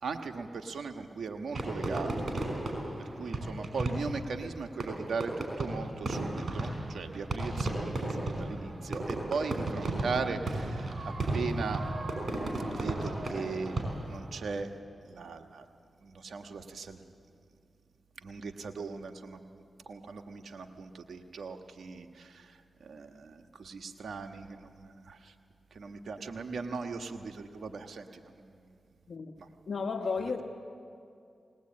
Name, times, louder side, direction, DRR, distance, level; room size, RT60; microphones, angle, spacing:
voice 1, 0.0-2.3 3.1-11.9 12.7-14.7 15.0-15.6 16.0-17.1 18.2-25.3 25.7-28.6 29.4-29.5, right 4 dB, 75° right, 6 dB, 1.4 m, -38 dB
Fireworks, 1.5-14.3, right 2 dB, 55° right, 5.4 m, -34 dB
voice 2, 29.7-30.4, left 4 dB, 70° left, 4 dB, 1.3 m, -33 dB
20.0 x 19.5 x 8.6 m, 2.4 s
cardioid pair, 45°, 0 cm